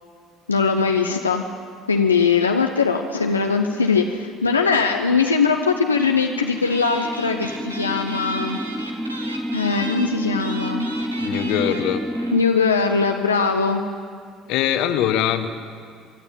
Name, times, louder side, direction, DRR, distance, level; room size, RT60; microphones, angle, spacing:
voice 1, 0.5-1.4 1.9-8.6 9.5-10.9 12.3-13.8, left 5 dB, 90° left, 2 dB, 0.7 m, -20 dB
sound 1, 5.7-12.4, equal, 5° right, 0.5 m, -29 dB
sound 2, 6.1-6.3 6.6-12.5 12.7-12.8 13.0-13.2, right 1 dB, 90° right, 1.6 m, -36 dB
voice 2, 11.2-12.1 14.5-15.5, left 10 dB, 65° left, 10 dB, 1.1 m, -22 dB
24.5 x 12.0 x 8.9 m, 2.1 s
figure-of-eight pair, 55°, 0 cm